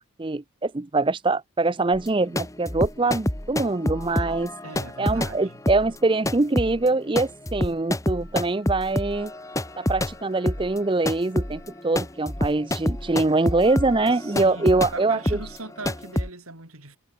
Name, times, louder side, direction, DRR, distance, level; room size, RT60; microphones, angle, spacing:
voice 1, 0.2-4.5 5.0-9.3 9.8-15.2, right 2 dB, 25° right, 0.5 m, -23 dB
sound 1, 1.9-10.2 10.5-16.3, left 1 dB, 15° left, 1.4 m, -28 dB
voice 2, 4.6-5.6 14.1-17.0, right 3 dB, 85° right, 6.4 m, -40 dB
Wind instrument woodwind instrument, 8.0-12.3, left 4 dB, 55° left, 5.8 m, -55 dB
head